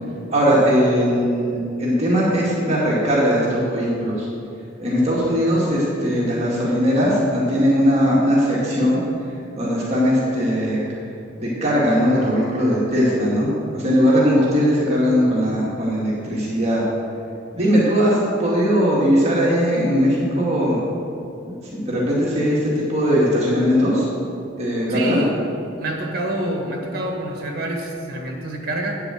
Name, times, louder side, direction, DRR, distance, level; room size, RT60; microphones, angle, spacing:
voice 1, 0.3-4.3 4.8-9.0 9.6-10.8 11.4-16.9 17.5-20.8 21.4-24.1 24.6-25.2, equal, 35° right, -6 dB, 2.1 m, -19 dB
voice 2, 24.9-25.3 25.8-29.0, right 1 dB, 50° right, 1 dB, 1.7 m, -27 dB
8.8 x 6.8 x 7.7 m, 2.6 s
head